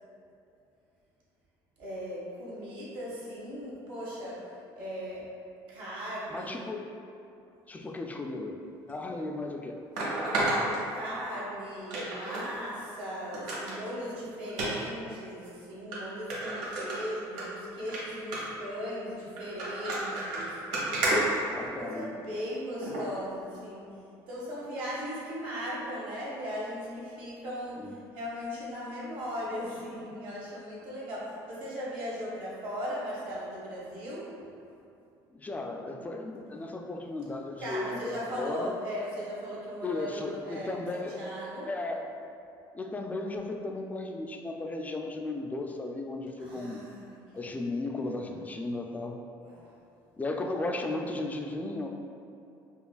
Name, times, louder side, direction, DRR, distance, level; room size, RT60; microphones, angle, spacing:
voice 1, 1.8-4.4 4.8-5.3 5.7-6.7 10.9-20.6 21.6-23.9 24.3-34.3 37.6-41.7 46.4-47.5 49.4-49.9, equal, 70° right, -7 dB, 1.4 m, -38 dB
voice 2, 6.3-6.9 7.7-8.6 8.9-9.8 21.4-22.1 27.8-27.9 35.3-38.8 39.8-41.2 41.7-42.1 42.7-46.8 47.3-49.2 50.2-51.9, left 2 dB, 15° left, 3 dB, 0.3 m, -35 dB
sound 1, 8.9-9.0 9.9-11.4 11.9-12.5 12.8-12.9 13.3-13.8 14.5-14.7 15.4-15.5 15.9-16.0 16.3-17.4 17.8-18.0 18.3-18.6 19.4-22.0 22.8-23.0 23.5-23.6, right 1 dB, 90° right, 1.0 m, -31 dB
5.3 x 2.3 x 2.3 m, 2.6 s
supercardioid pair, 90°, 10 cm